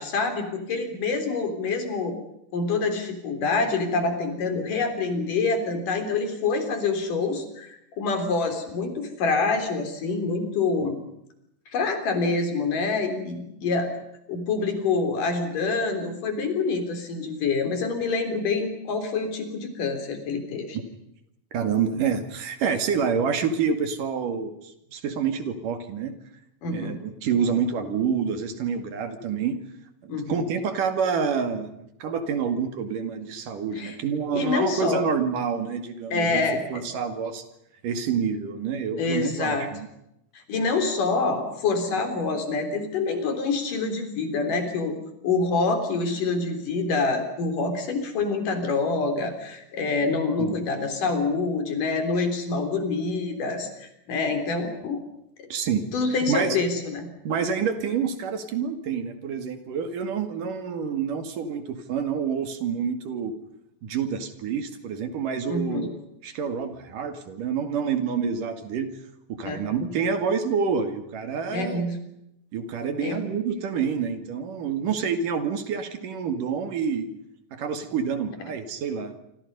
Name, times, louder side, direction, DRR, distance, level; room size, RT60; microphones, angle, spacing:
voice 1, 0.0-2.1 2.5-11.0 11.7-13.9 14.3-20.8 26.6-27.0 30.1-30.4 33.8-34.0 34.3-35.0 36.1-36.8 39.0-39.7 40.5-45.0 45.2-55.0 55.4-55.5 55.9-57.1 65.5-65.9 69.5-69.6 71.5-72.0 73.0-73.2, left 4 dB, 75° left, 6 dB, 5.2 m, -26 dB
voice 2, 21.5-26.1 26.7-29.6 30.0-36.4 36.7-37.4 37.8-39.9 50.4-50.6 55.5-56.6 57.3-63.3 63.8-65.9 66.2-68.9 69.3-71.9 72.5-77.1 77.5-79.2, right 6 dB, 75° right, 8 dB, 3.8 m, -28 dB
27.0 x 26.5 x 5.5 m, 0.81 s
omnidirectional pair, 3.7 m